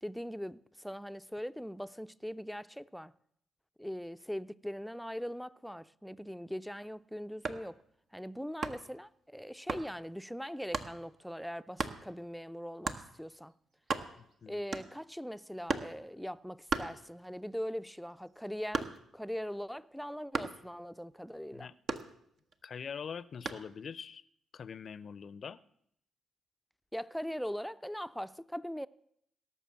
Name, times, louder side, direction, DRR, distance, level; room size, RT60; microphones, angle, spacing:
voice 1, 0.0-3.1 3.8-7.8 8.1-13.5 14.5-21.7 26.9-28.9, equal, ahead, 0.5 m, -41 dB
sound 1, 7.3-7.7 8.6-9.0 9.7-9.9 10.7-11.0 11.8-12.0 12.8-13.1 13.5-13.6 13.8-14.3 14.7-15.1 15.7-16.0 16.7-17.4 17.8-19.2 20.3-20.7 21.9-22.5 23.5-23.7, right 4 dB, 55° right, 1.0 m, -36 dB
voice 2, 14.2-14.6 21.5-21.7 22.6-24.2 24.5-25.6, left 6 dB, 50° left, 0.5 m, -43 dB
17.0 x 6.8 x 7.3 m
hypercardioid pair, 40°, 0 cm